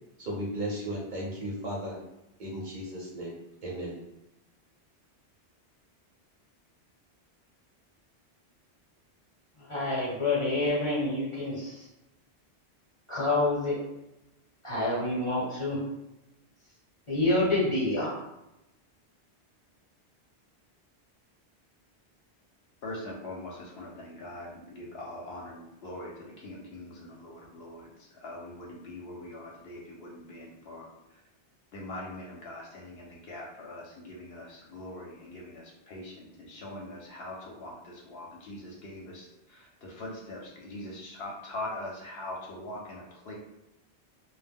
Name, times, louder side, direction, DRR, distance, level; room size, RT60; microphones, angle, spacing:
voice 1, 0.2-2.0 2.4-3.3 3.6-3.9, right 1 dB, 50° right, -4 dB, 0.7 m, -35 dB
voice 2, 9.6-11.9 13.1-13.8 14.6-15.8 17.1-18.1, left 2 dB, 35° left, -5 dB, 0.7 m, -27 dB
voice 3, 22.8-27.9 28.2-30.9 31.7-39.3 39.5-43.3, left 1 dB, 70° left, -1 dB, 0.8 m, -42 dB
2.1 x 2.1 x 3.5 m, 0.92 s
omnidirectional pair, 1.1 m